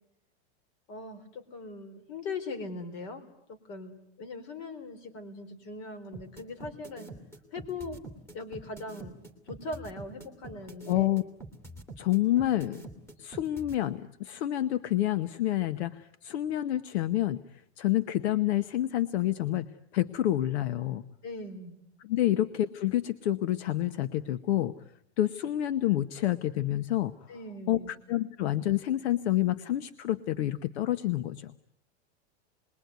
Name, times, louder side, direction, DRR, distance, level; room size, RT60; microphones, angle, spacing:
voice 1, 0.9-3.2 3.5-7.1 7.5-8.0 8.3-9.2 9.5-11.1 21.2-21.8 27.3-27.9, left 3 dB, 45° left, 10 dB, 4.0 m, -40 dB
sound 1, 6.1-13.8, right 2 dB, 10° left, 2.9 m, -45 dB
voice 2, 10.9-11.2 12.0-12.8 13.2-17.4 17.8-19.7 19.9-21.0 22.1-24.7 25.2-27.1 27.7-31.5, left 13 dB, 75° left, 13 dB, 1.1 m, -28 dB
28.5 x 21.5 x 9.4 m, 0.76 s
supercardioid pair, 160°, 33 cm